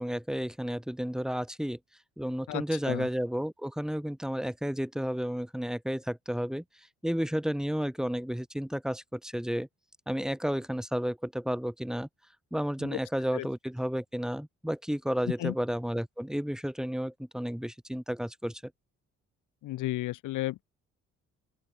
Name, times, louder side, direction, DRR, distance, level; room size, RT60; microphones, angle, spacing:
voice 1, 0.0-1.8 2.2-6.6 7.0-9.7 10.1-12.1 12.5-18.7, equal, ahead, 8.0 m, -32 dB
voice 2, 2.5-3.1 12.8-13.0 13.3-13.5 15.4-15.5 19.6-20.6, left 16 dB, 85° left, 1.0 m, -33 dB
open air
cardioid pair, 90°, 30 cm